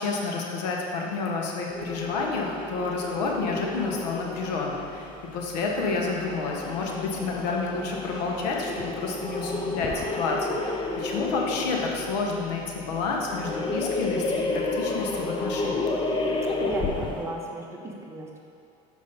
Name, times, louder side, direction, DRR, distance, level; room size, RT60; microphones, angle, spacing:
voice 1, 0.0-15.9, left 4 dB, 80° left, 0 dB, 1.0 m, -30 dB
sound 1, 1.7-17.4, left 2 dB, 25° left, 0.6 m, -31 dB
voice 2, 16.5-18.4, right 1 dB, 15° right, -1 dB, 0.9 m, -35 dB
6.6 x 5.2 x 4.1 m, 2.7 s
supercardioid pair, 110°, 21 cm